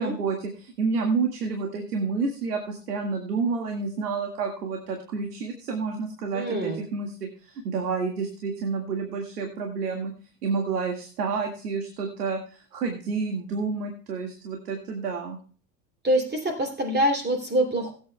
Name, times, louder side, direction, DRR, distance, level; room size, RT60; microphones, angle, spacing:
voice 1, 0.0-10.1 10.4-15.4, right 4 dB, 90° right, 3 dB, 2.0 m, -29 dB
voice 2, 6.3-6.8 16.0-18.0, equal, 20° right, 4 dB, 2.9 m, -25 dB
19.5 x 8.7 x 2.3 m, 0.41 s
hypercardioid pair, 85°, 45 cm